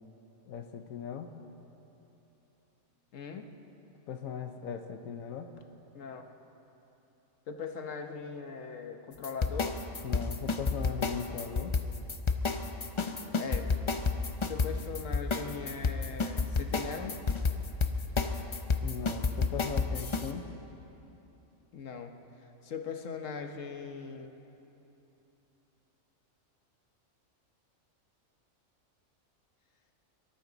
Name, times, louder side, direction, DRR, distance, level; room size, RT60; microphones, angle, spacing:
voice 1, 0.5-1.3 4.1-5.5 10.0-11.8 18.8-20.5, left 7 dB, 90° left, 6 dB, 1.2 m, -39 dB
voice 2, 3.1-3.5 5.9-6.3 7.5-9.7 12.6-12.7 13.1-13.7 14.5-17.2 21.7-22.1 22.6-24.3, left 5 dB, 70° left, 5 dB, 1.4 m, -40 dB
sound 1, 9.2-20.3, left 4 dB, 40° left, 0.4 m, -30 dB
23.5 x 13.5 x 4.0 m, 3.0 s
omnidirectional pair, 1.4 m